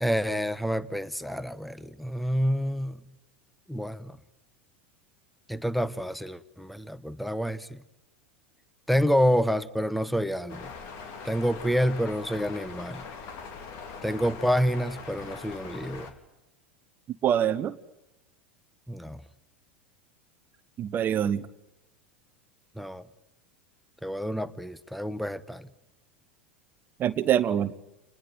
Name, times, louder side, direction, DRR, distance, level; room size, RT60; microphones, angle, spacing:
voice 1, 0.0-3.0 3.7-4.2 5.5-7.8 8.9-10.7 11.2-13.0 14.0-16.1 18.9-19.2 22.8-23.0 24.0-25.7, equal, ahead, 18 dB, 1.2 m, -28 dB
sound 1, 10.5-16.1, left 5 dB, 50° left, 4.0 m, -42 dB
voice 2, 17.2-17.7 20.8-21.4 27.0-27.7, right 10 dB, 35° right, 13 dB, 1.0 m, -24 dB
29.5 x 20.5 x 9.3 m, 0.96 s
figure-of-eight pair, 85°, 6 cm